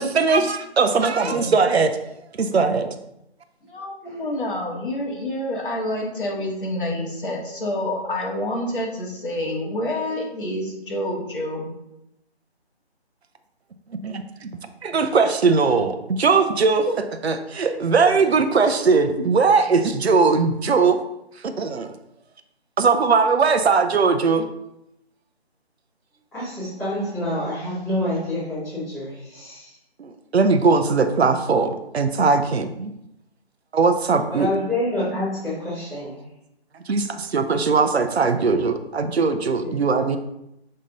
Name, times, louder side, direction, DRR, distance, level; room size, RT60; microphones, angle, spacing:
voice 1, 0.0-2.0 2.4-2.9 13.9-16.9 17.2-21.0 21.4-21.9 22.8-24.5 30.0-32.9 33.7-34.5 36.9-40.2, right 4 dB, 70° right, 7 dB, 0.7 m, -20 dB
voice 2, 1.0-1.5 4.0-4.2 26.3-29.7 34.3-36.2 39.6-40.1, left 1 dB, ahead, -18 dB, 1.5 m, -28 dB
voice 3, 3.6-11.7 16.9-17.0, left 1 dB, 50° left, -2 dB, 1.8 m, -28 dB
6.5 x 3.6 x 4.0 m, 0.84 s
figure-of-eight pair, 160°, 33 cm